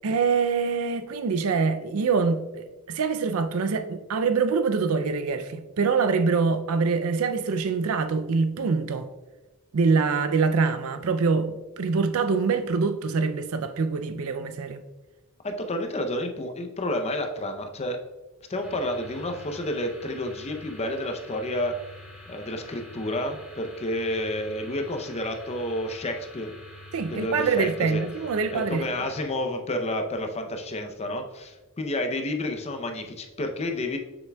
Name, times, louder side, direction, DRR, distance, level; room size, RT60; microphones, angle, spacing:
voice 1, 0.0-9.1 9.7-14.8 26.9-28.9, right 4 dB, 70° right, 0.4 m, -25 dB
voice 2, 15.4-18.0 18.5-21.8 22.3-26.5 27.1-28.0 28.5-34.0, left 1 dB, 30° left, 0.6 m, -30 dB
sound 1, 18.6-29.2, left 1 dB, 5° right, 1.8 m, -46 dB
7.1 x 6.6 x 2.3 m
head